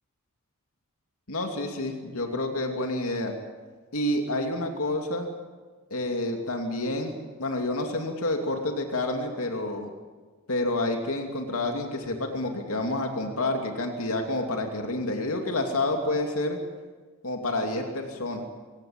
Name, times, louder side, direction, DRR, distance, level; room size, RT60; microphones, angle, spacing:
voice 1, 1.3-3.3 3.9-5.3 5.9-7.1 7.4-9.9 10.5-16.6 17.2-18.4, left 2 dB, 70° left, 3 dB, 2.8 m, -29 dB
25.0 x 17.0 x 8.8 m, 1.4 s
head